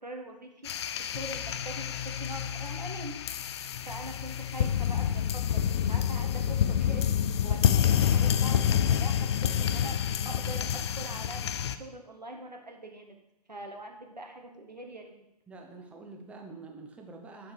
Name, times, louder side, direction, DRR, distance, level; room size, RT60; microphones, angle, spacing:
voice 1, 0.0-3.1 3.8-7.1 7.4-10.0 10.2-13.2 13.5-15.1, right 1 dB, 85° right, 2 dB, 1.6 m, -43 dB
sound 1, 0.6-11.8, left 9 dB, 40° left, 0.5 m, -28 dB
voice 2, 15.5-17.5, right 3 dB, 5° right, 2 dB, 0.7 m, -46 dB
8.5 x 5.9 x 4.9 m, 0.84 s
figure-of-eight pair, 120°, 21 cm